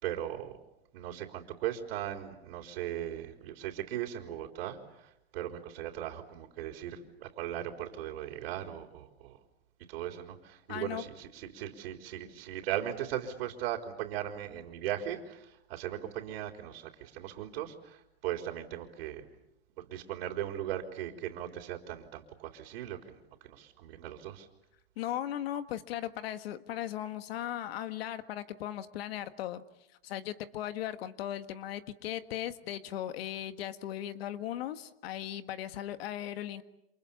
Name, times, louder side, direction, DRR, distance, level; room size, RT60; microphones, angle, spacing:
voice 1, 0.0-0.6 0.9-9.4 9.9-19.3 19.8-24.5, right 11 dB, 65° right, 4 dB, 4.0 m, -38 dB
voice 2, 10.7-11.0 25.0-29.6 30.0-36.6, left 12 dB, 65° left, 10 dB, 1.8 m, -37 dB
29.5 x 27.5 x 7.2 m, 0.85 s
hypercardioid pair, 130°, 32 cm